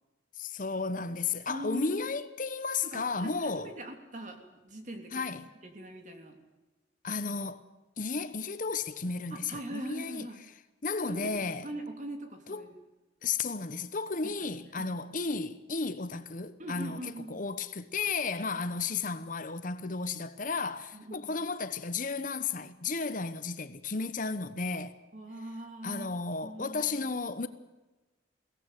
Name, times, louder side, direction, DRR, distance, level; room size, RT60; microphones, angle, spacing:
voice 1, 0.4-3.7 5.1-5.5 7.0-7.6 8.0-11.7 12.5-12.7 13.2-25.0 25.8-27.5, left 4 dB, 45° left, 1.0 m, -34 dB
voice 2, 1.5-2.0 2.9-4.4 4.6-5.2 5.6-6.4 9.3-10.4 11.0-11.3 11.6-12.7 14.2-14.3 14.8-15.0 16.6-17.4 20.9-21.3 25.1-26.1 26.4-27.1, right 1 dB, 40° right, 3.3 m, -41 dB
22.5 x 17.5 x 9.2 m
head